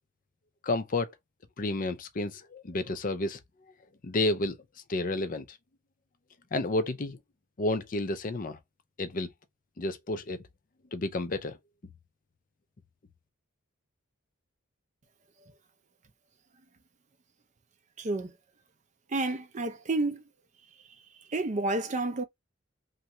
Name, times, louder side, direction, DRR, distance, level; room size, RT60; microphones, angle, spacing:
voice 1, 0.6-1.1 1.6-3.4 4.0-4.6 4.9-5.6 6.5-7.2 7.6-8.6 9.0-9.3 9.8-10.4 10.9-11.6, left 2 dB, 40° left, 0.5 m, -30 dB
voice 2, 18.0-18.3 19.1-20.2 21.3-22.2, right 2 dB, 35° right, 0.5 m, -30 dB
3.1 x 2.4 x 2.7 m
head